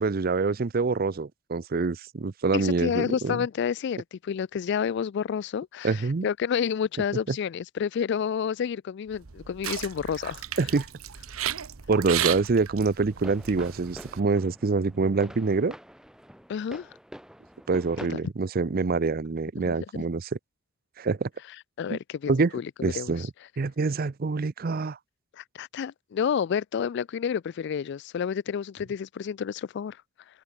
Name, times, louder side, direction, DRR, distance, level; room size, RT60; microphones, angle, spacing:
voice 1, 0.0-3.4 5.8-6.3 10.6-10.9 11.9-15.8 17.7-20.3 21.0-21.3 21.9-22.0 22.3-22.5 22.8-23.3 23.6-25.0, right 4 dB, 45° right, 0.5 m, -26 dB
voice 2, 2.5-10.4 16.5-16.9 18.0-18.2 19.6-19.8 21.8-23.3 25.4-30.0, left 7 dB, 55° left, 0.3 m, -30 dB
sound 1, 9.1-14.2, right 11 dB, 90° right, 1.0 m, -34 dB
sound 2, 13.1-18.1, equal, 5° right, 4.5 m, -46 dB
head